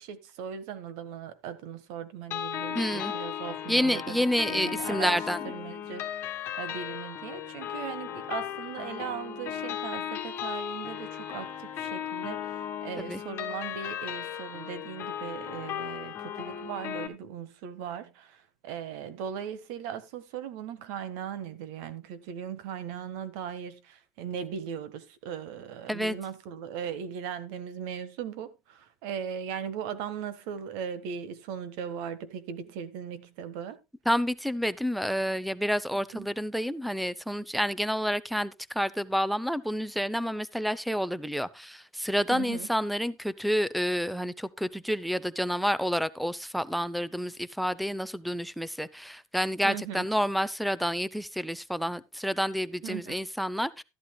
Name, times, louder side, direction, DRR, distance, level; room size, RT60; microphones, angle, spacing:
voice 1, 0.0-33.8 36.1-36.3 42.3-42.7 49.6-50.0 52.8-53.2, right 8 dB, 60° right, 1.4 m, -38 dB
sound 1, 2.3-17.1, left 10 dB, 35° left, 1.9 m, -36 dB
voice 2, 2.7-3.1 3.7-5.4 13.0-13.2 25.9-26.2 34.1-53.8, equal, ahead, 0.5 m, -29 dB
13.0 x 12.0 x 2.2 m
cardioid pair, 165°, 7 cm